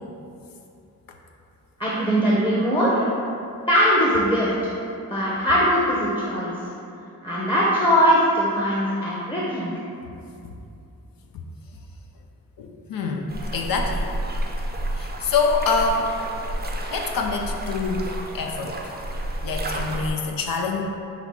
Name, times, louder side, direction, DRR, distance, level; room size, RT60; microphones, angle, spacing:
voice 1, 1.8-3.0 3.7-4.7 5.1-6.5 7.2-9.7, equal, 15° left, -7 dB, 0.8 m, -21 dB
voice 2, 12.6-14.1 14.9-16.1 16.9-18.9 19.4-20.8, left 4 dB, 75° left, 2 dB, 0.5 m, -26 dB
sound 1, 13.3-20.1, right 1 dB, 30° right, 0.5 m, -30 dB
5.7 x 2.3 x 3.6 m, 2.6 s
cardioid pair, 65°, 35 cm